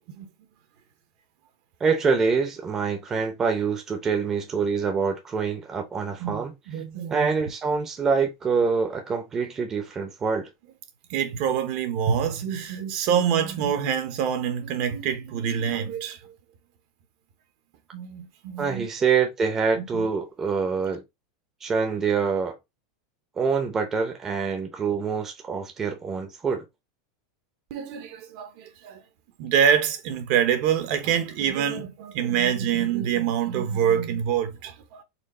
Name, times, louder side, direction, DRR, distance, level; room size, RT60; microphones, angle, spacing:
voice 1, 1.8-6.6 7.1-10.5 18.6-21.0 21.6-22.6 23.4-26.7, right 5 dB, 20° right, 0.8 m, -25 dB
voice 2, 6.2-7.3 11.1-16.2 17.9-18.9 19.8-20.1 27.7-29.0 29.4-35.0, right 8 dB, 50° right, 0.9 m, -26 dB
4.3 x 2.3 x 4.2 m
supercardioid pair, 150°, 2 cm